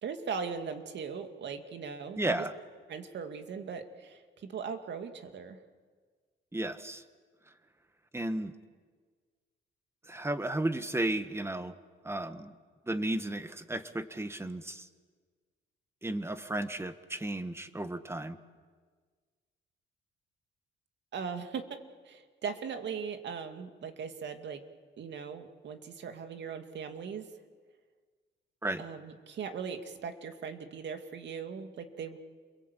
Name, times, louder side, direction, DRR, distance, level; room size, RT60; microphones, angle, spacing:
voice 1, 0.0-2.4 2.9-5.6 21.1-21.7 22.1-24.6 25.0-27.3 28.8-32.2, right 6 dB, 65° right, 6 dB, 2.4 m, -39 dB
voice 2, 2.2-2.5 6.5-7.0 8.1-8.5 10.1-11.7 12.0-12.5 12.9-14.9 16.0-18.4 28.6-28.8, right 1 dB, 10° right, 10 dB, 1.7 m, -33 dB
29.0 x 22.5 x 8.4 m, 1.5 s
cardioid pair, 90°, 20 cm